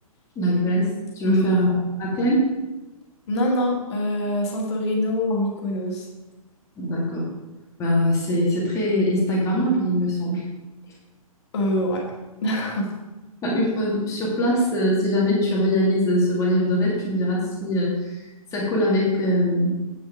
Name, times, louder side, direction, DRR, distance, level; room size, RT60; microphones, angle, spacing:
voice 1, 0.4-0.9 1.2-1.7 2.0-2.5 6.8-7.2 7.8-10.4 13.4-17.9 18.5-19.8, equal, 15° left, -4 dB, 2.5 m, -22 dB
voice 2, 3.3-6.1 11.5-12.0 12.4-12.9, left 1 dB, 50° left, -1 dB, 2.2 m, -24 dB
8.8 x 6.3 x 4.9 m, 1.1 s
figure-of-eight pair, 120°, 19 cm